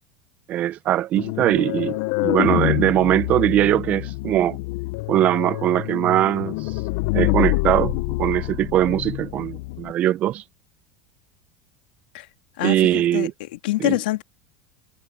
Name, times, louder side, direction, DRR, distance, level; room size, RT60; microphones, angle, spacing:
voice 1, 0.5-4.6 5.1-6.5 7.1-10.4 12.6-13.3 13.8-14.0, right 13 dB, 30° right, 0.5 m, -21 dB
sound 1, 1.2-9.9, left 22 dB, 55° left, 0.6 m, -26 dB
voice 2, 12.6-14.2, left 18 dB, 90° left, 2.3 m, -26 dB
supercardioid pair, 170°, 5 cm